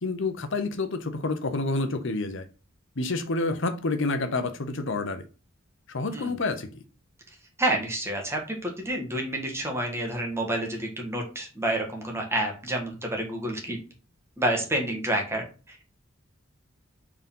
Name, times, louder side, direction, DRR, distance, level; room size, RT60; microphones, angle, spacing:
voice 1, 0.0-2.4 3.0-5.2 5.9-6.8, left 3 dB, 65° left, 0.9 m, -28 dB
voice 2, 7.6-13.8 14.4-15.8, right 1 dB, 15° right, 1.6 m, -29 dB
4.9 x 4.0 x 5.4 m
head